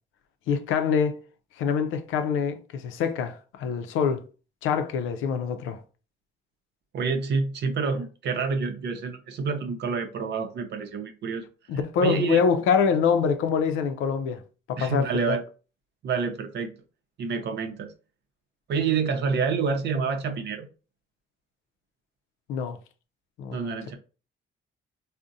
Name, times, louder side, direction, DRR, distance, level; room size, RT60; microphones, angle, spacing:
voice 1, 0.5-1.2 1.6-4.2 4.6-5.8 11.7-14.4 14.7-15.4 22.5-22.8 23.4-24.0, left 6 dB, 90° left, 0.5 m, -25 dB
voice 2, 6.9-11.5 12.0-12.4 14.8-15.4 16.0-16.7 17.2-17.9 18.7-20.7 23.5-24.0, right 5 dB, 60° right, 0.6 m, -28 dB
3.6 x 2.1 x 2.6 m
cardioid pair, 90°, 20 cm